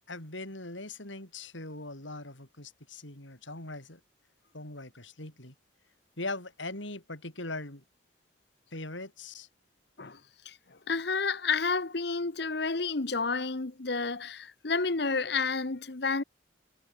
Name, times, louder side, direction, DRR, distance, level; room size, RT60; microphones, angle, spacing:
voice 1, 0.1-4.0 4.5-5.5 6.2-7.8 8.7-9.5, left 2 dB, 75° left, 6.6 m, -40 dB
voice 2, 10.4-16.2, left 4 dB, 55° left, 1.0 m, -30 dB
head